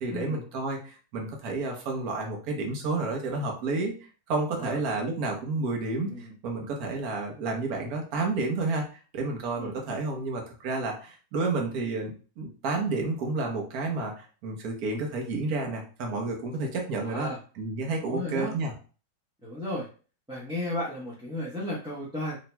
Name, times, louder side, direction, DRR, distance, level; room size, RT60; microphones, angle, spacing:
voice 1, 0.0-3.9 4.3-8.8 9.1-17.3 17.6-18.7, right 3 dB, 70° right, 1 dB, 1.4 m, -30 dB
voice 2, 17.0-17.4 18.0-18.5 19.4-19.9 20.3-22.4, left 1 dB, 5° right, -6 dB, 0.5 m, -34 dB
4.2 x 3.5 x 2.2 m, 0.37 s
omnidirectional pair, 1.7 m